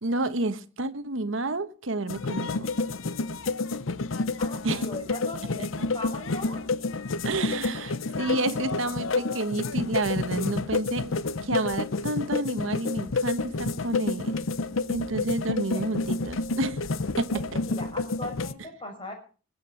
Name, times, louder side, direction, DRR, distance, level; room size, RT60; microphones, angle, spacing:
voice 1, 0.0-2.7 4.6-4.8 5.6-5.7 7.2-11.2 11.4-14.4 14.9-16.8 17.2-17.6, right 2 dB, 75° right, 1.2 m, -30 dB
sound 1, 2.1-18.5, left 3 dB, 80° left, 0.8 m, -29 dB
voice 2, 4.4-6.6 15.7-15.8 17.3-19.1, left 1 dB, 25° left, 6.1 m, -39 dB
21.0 x 8.3 x 5.9 m
head